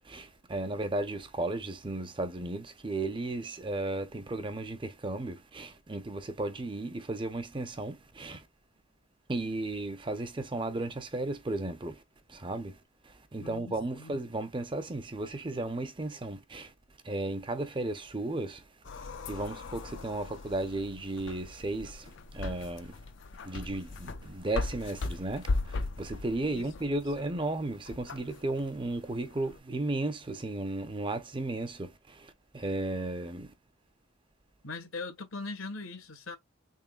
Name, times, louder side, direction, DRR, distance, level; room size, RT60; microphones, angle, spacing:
voice 1, 0.0-8.5 9.3-12.0 12.3-12.8 13.0-16.7 17.0-18.7 19.3-23.0 23.4-33.5, right 2 dB, 25° right, 0.6 m, -35 dB
voice 2, 13.4-14.3 26.5-27.0 34.6-36.4, left 3 dB, 80° left, 1.4 m, -41 dB
sound 1, 18.8-29.6, left 3 dB, 60° left, 0.5 m, -39 dB
3.7 x 3.6 x 2.3 m
head